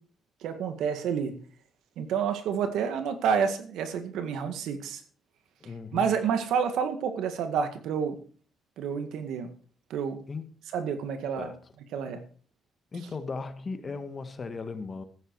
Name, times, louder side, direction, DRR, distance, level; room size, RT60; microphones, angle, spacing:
voice 1, 0.4-1.4 2.0-5.0 5.9-8.2 8.8-9.5 9.9-10.2 10.7-11.5 11.9-12.2, right 7 dB, 85° right, 1.9 m, -29 dB
voice 2, 5.6-6.1 10.3-10.5 11.4-11.6 12.9-15.0, left 4 dB, 40° left, 1.6 m, -37 dB
14.0 x 9.4 x 4.7 m
cardioid pair, 90°, 0 cm